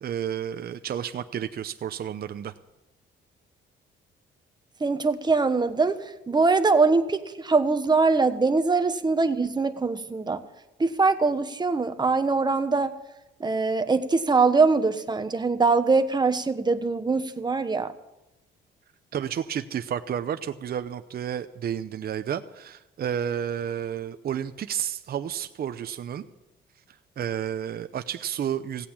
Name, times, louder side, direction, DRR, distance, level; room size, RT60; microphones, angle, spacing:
voice 1, 0.0-2.5 19.1-26.3 27.2-28.9, right 9 dB, 50° right, 9 dB, 0.7 m, -31 dB
voice 2, 4.8-10.4 10.8-12.9 13.4-17.9, right 4 dB, 20° right, 9 dB, 1.2 m, -23 dB
16.5 x 8.5 x 8.6 m, 0.96 s
cardioid pair, 90°, 20 cm